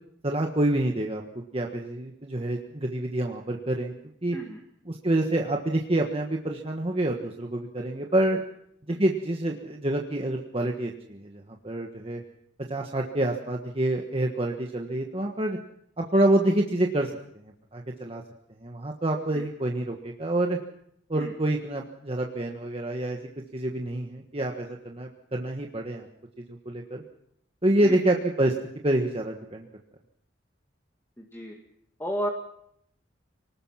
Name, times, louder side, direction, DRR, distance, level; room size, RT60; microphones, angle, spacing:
voice 1, 0.2-1.2 1.5-3.9 4.2-4.4 4.9-8.4 8.9-12.2 12.7-15.6 16.0-17.1 17.7-18.2 18.6-20.6 21.1-23.2 23.5-26.1 26.5-27.0 27.6-28.5 28.8-29.7, right 1 dB, 30° right, 1 dB, 1.5 m, -27 dB
voice 2, 31.2-31.6 32.0-32.3, equal, 10° left, 0 dB, 2.1 m, -32 dB
25.5 x 19.0 x 5.9 m, 0.73 s
head